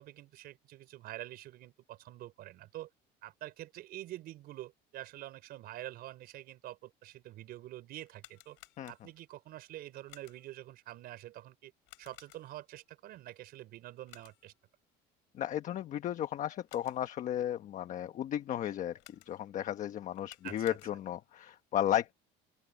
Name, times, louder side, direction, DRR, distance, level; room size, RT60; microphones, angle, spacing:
voice 1, 0.0-2.9 3.2-8.6 8.9-11.7 12.0-14.5 20.4-20.8, right 15 dB, 55° right, 4.9 m, -47 dB
sound 1, 8.0-9.3 10.1-10.6 11.9-12.7 14.1-14.6 16.4-17.2 19.0-19.6 20.1-21.3, left 26 dB, 85° left, 7.8 m, -58 dB
voice 2, 15.3-19.0 19.3-22.1, left 11 dB, 40° left, 1.2 m, -34 dB
open air
cardioid pair, 160°, 19 cm